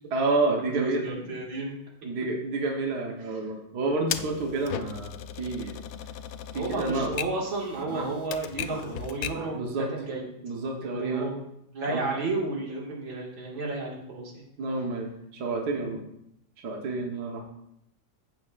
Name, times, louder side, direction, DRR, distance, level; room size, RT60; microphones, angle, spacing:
voice 1, 0.1-1.0 1.3-1.4 2.0-5.8 6.5-7.2 7.7-8.1 8.7-8.8 9.3-9.9 10.4-11.4 11.9-12.0 14.6-15.1 15.3-16.0 16.6-17.4, right 3 dB, 55° right, 1 dB, 1.7 m, -29 dB
voice 2, 0.8-1.8 2.0-2.1 6.5-10.3 10.8-11.4 11.7-14.4, right 3 dB, 85° right, -2 dB, 2.8 m, -32 dB
Typewriter, 4.1-9.5, left 9 dB, 80° left, 1.3 m, -37 dB
14.5 x 7.6 x 2.5 m, 0.77 s
omnidirectional pair, 2.1 m